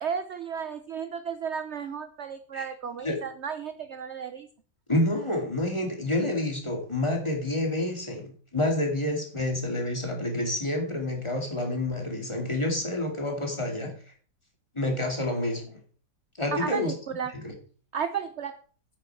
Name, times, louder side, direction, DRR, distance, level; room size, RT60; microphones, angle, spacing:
voice 1, 0.0-4.5 16.5-17.3 17.9-18.5, right 7 dB, 55° right, 10 dB, 0.8 m, -33 dB
voice 2, 4.9-13.9 14.7-15.8 16.4-17.0 17.3-17.5, left 1 dB, 15° left, 1 dB, 2.5 m, -28 dB
9.9 x 9.2 x 4.7 m, 0.42 s
omnidirectional pair, 1.9 m